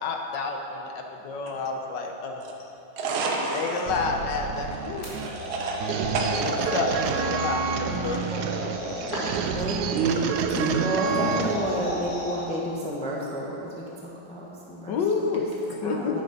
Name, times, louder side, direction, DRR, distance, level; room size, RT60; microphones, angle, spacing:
voice 1, 0.0-2.4 3.5-5.1 6.4-8.9 14.9-16.2, left 4 dB, 65° left, 3 dB, 1.4 m, -30 dB
voice 2, 3.0-3.9 5.0-5.8 6.1-6.6 7.4-7.5 8.0-8.3 9.3-9.4 9.9-11.4, right 4 dB, 40° right, -1 dB, 1.0 m, -29 dB
sound 1, 3.9-11.8, right 6 dB, 75° right, 0.9 m, -29 dB
sound 2, 5.0-7.0 8.3-9.5 11.0-12.4, left 1 dB, 35° left, 2.2 m, -34 dB
voice 3, 9.5-10.2 10.8-13.6 14.0-15.0 15.8-16.2, equal, 5° left, -5 dB, 0.9 m, -31 dB
9.5 x 7.7 x 5.3 m, 2.9 s
omnidirectional pair, 2.3 m